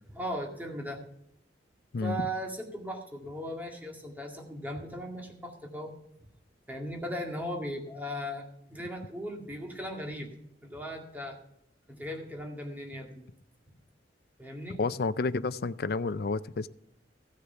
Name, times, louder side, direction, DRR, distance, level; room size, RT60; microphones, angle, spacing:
voice 1, 0.1-1.0 2.0-5.9 6.7-10.3 10.6-11.4 11.9-13.2 14.4-14.8, equal, 10° right, 1 dB, 2.1 m, -37 dB
voice 2, 1.9-2.3 14.8-16.7, left 3 dB, 60° left, 15 dB, 0.5 m, -30 dB
15.5 x 6.6 x 5.8 m, 0.78 s
head